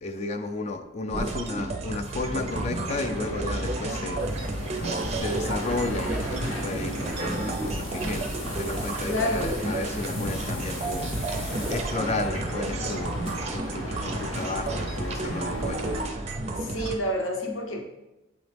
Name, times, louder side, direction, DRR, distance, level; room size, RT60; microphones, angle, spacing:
voice 1, 0.0-4.3 4.6-4.8 5.1-11.1 11.7-13.2 13.5-15.8, left 3 dB, 30° left, 8 dB, 0.4 m, -33 dB
sound 1, 1.1-16.9, right 2 dB, 30° right, 0.5 m, -32 dB
sound 2, 2.1-16.1, equal, 90° left, 1.9 m, -35 dB
voice 2, 9.1-9.7 16.5-17.8, equal, 70° left, 1 dB, 0.9 m, -28 dB
7.9 x 4.0 x 3.4 m, 1.0 s
head